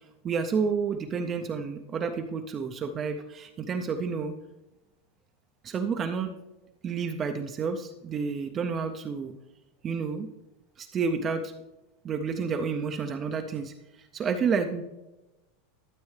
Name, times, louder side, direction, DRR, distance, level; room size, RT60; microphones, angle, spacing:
voice 1, 0.2-4.3 5.6-6.3 6.8-9.3 9.8-10.3 10.8-11.5 12.0-13.7 14.1-14.8, right 5 dB, 20° right, 5 dB, 0.4 m, -30 dB
12.5 x 7.4 x 3.2 m, 1.0 s
supercardioid pair, 175°, 0 cm